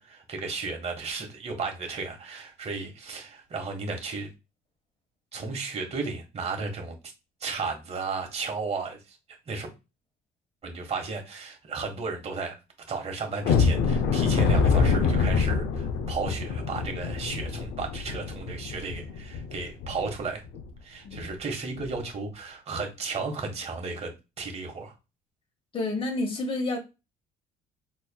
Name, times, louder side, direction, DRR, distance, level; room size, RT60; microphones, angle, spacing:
voice 1, 0.0-4.3 5.3-7.0 7.4-9.2 9.5-9.7 10.6-12.6 12.9-20.4 20.8-24.1 24.4-24.9, right 4 dB, 40° right, 1.3 m, -34 dB
sound 1, 13.4-20.2 20.5-20.7 21.1-21.3 21.7-21.9, left 5 dB, 80° left, 0.6 m, -25 dB
voice 2, 25.7-26.8, left 2 dB, 35° left, 1.3 m, -29 dB
4.3 x 2.9 x 2.2 m
cardioid pair, 110°, 17 cm